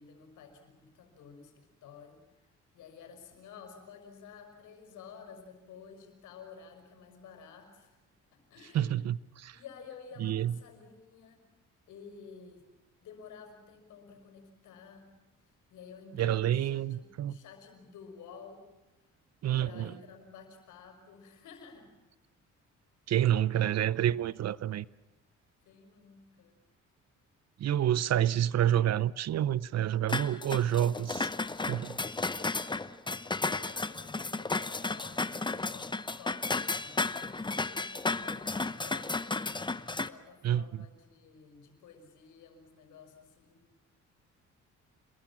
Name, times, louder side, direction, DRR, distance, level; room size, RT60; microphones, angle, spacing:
voice 1, 0.0-8.0 8.3-9.0 9.5-11.4 11.9-12.6 13.0-15.1 15.7-18.7 19.6-22.0 23.1-23.2 25.7-26.6 33.2-39.7 40.1-43.6, left 6 dB, 80° left, 5.7 m, -52 dB
voice 2, 8.7-9.6 10.2-10.5 16.2-17.4 19.4-19.9 23.1-24.8 27.6-31.3 31.7-32.0 40.4-40.9, right 11 dB, 60° right, 0.7 m, -28 dB
sound 1, 30.1-40.1, left 3 dB, 15° left, 0.9 m, -33 dB
28.0 x 21.5 x 7.4 m
cardioid pair, 90°, 30 cm